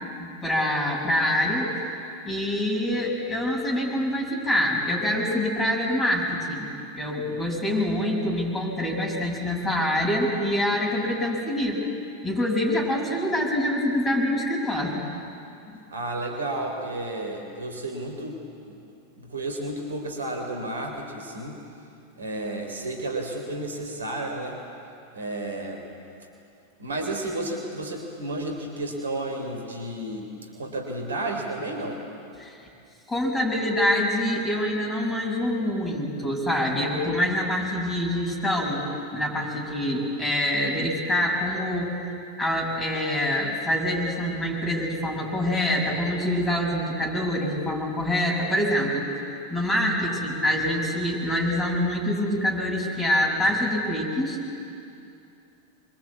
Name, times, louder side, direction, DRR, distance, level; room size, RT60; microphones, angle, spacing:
voice 1, 0.4-1.8 2.2-11.8 12.2-15.0 15.7-15.8 32.4-32.6 33.1-38.8 39.1-49.0 49.5-54.4, left 1 dB, 10° left, -3 dB, 6.7 m, -25 dB
voice 2, 15.9-18.4 18.7-18.8 19.2-21.6 22.2-24.6 25.1-25.9 26.8-32.1, right 2 dB, 70° right, 3 dB, 3.7 m, -32 dB
26.0 x 23.5 x 8.4 m, 2.6 s
figure-of-eight pair, 90°, 0 cm